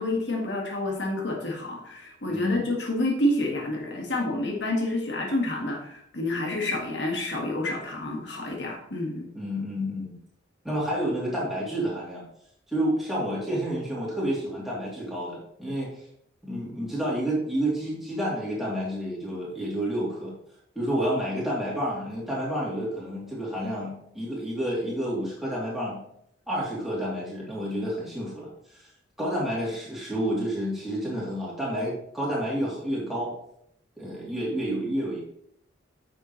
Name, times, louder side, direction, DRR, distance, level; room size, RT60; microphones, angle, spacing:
voice 1, 0.0-9.3, left 1 dB, 70° left, 0 dB, 1.6 m, -29 dB
voice 2, 2.3-2.7 9.3-10.1 10.6-12.2 12.7-15.9 16.4-20.3 20.7-26.0 26.5-28.8 29.2-33.3 34.0-35.2, equal, ahead, -6 dB, 2.9 m, -29 dB
9.6 x 6.7 x 3.1 m, 0.69 s
head